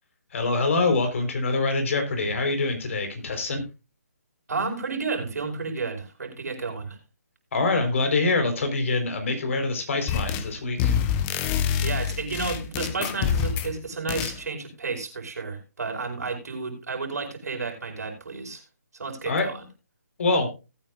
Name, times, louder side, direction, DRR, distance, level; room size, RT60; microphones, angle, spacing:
voice 1, 0.3-3.6 7.5-11.0 19.3-19.5 20.2-20.5, left 3 dB, 50° left, 6 dB, 4.1 m, -25 dB
voice 2, 4.5-7.0 11.8-18.6 18.9-19.6, right 4 dB, 65° right, 3 dB, 5.1 m, -32 dB
sound 1, 10.1-10.5 10.8-13.7 14.1-14.4, left 8 dB, 20° left, 0.8 m, -26 dB
18.5 x 8.9 x 2.5 m, 0.28 s
figure-of-eight pair, 155°, 9 cm